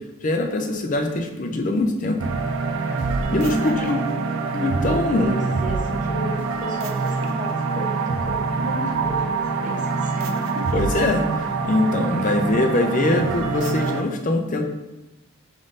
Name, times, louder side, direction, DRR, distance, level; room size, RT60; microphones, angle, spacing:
voice 1, 0.2-2.2 3.3-4.0 4.5-5.4 10.7-11.3 11.6-14.6, left 2 dB, 35° left, 4 dB, 0.4 m, -22 dB
sound 1, 2.2-14.0, right 4 dB, 65° right, 0.4 m, -25 dB
voice 2, 3.4-4.0 4.8-10.7 11.8-12.4, equal, 35° right, -1 dB, 0.7 m, -33 dB
5.2 x 3.6 x 2.5 m, 1.0 s
head